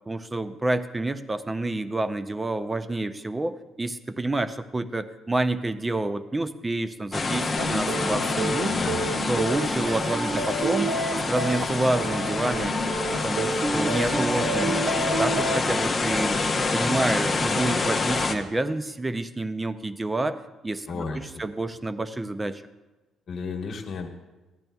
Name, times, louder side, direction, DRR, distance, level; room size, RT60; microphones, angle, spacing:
voice 1, 0.1-8.7 9.3-10.9 11.3-12.7 13.2-14.8 15.2-16.4 16.7-20.4 20.6-21.0 21.4-22.6, right 2 dB, 15° right, 12 dB, 0.4 m, -28 dB
sound 1, 7.1-18.3, left 3 dB, 20° left, 0.8 m, -27 dB
sound 2, 7.6-15.6, right 2 dB, 60° right, 1.1 m, -30 dB
voice 2, 8.7-9.0 20.9-21.5 23.3-24.1, left 4 dB, 45° left, 2 dB, 1.3 m, -33 dB
15.0 x 10.5 x 2.3 m, 1.1 s
cardioid pair, 135°, 0 cm